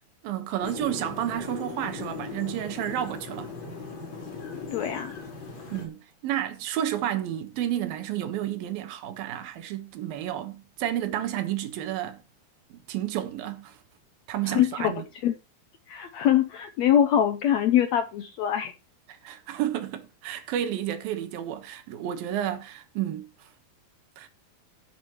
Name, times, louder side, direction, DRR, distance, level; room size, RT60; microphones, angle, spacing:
voice 1, 0.2-3.5 5.7-12.2 12.7-13.8 14.3-15.0 19.2-23.5 24.2-24.3, right 11 dB, 80° right, 3.1 m, -31 dB
sound 1, 0.6-5.9, left 5 dB, 45° left, 5.4 m, -38 dB
voice 2, 4.7-5.1 14.4-14.9 15.2-15.4 15.9-18.7, left 10 dB, 80° left, 1.5 m, -23 dB
17.0 x 7.3 x 3.1 m
omnidirectional pair, 4.2 m